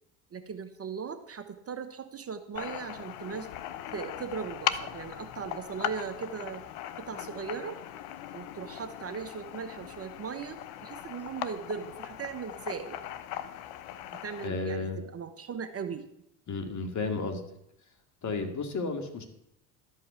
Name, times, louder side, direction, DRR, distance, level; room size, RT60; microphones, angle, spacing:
voice 1, 0.3-3.5 3.9-6.6 7.0-7.8 8.3-13.0 14.2-16.1 18.4-18.6, right 6 dB, 30° right, 9 dB, 1.1 m, -38 dB
sound 1, 2.6-14.5, left 12 dB, 75° left, 0.9 m, -39 dB
voice 2, 14.4-15.0 16.5-17.4 18.2-19.2, left 3 dB, 40° left, 5 dB, 2.3 m, -32 dB
12.5 x 5.6 x 8.1 m, 0.80 s
hypercardioid pair, 75°, 44 cm